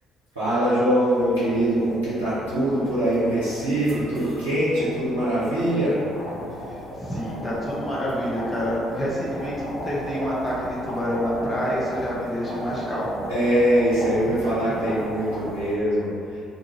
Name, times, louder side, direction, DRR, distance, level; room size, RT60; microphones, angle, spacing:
voice 1, 0.3-6.0 13.3-16.4, right 1 dB, 80° right, -13 dB, 0.6 m, -23 dB
sound 1, 1.0-15.7, equal, 55° left, 1.0 m, -36 dB
voice 2, 6.6-13.2 14.3-14.4 14.6-14.8, equal, 15° left, -8 dB, 0.9 m, -28 dB
2.6 x 2.4 x 2.9 m, 2.4 s
figure-of-eight pair, 50°, 0 cm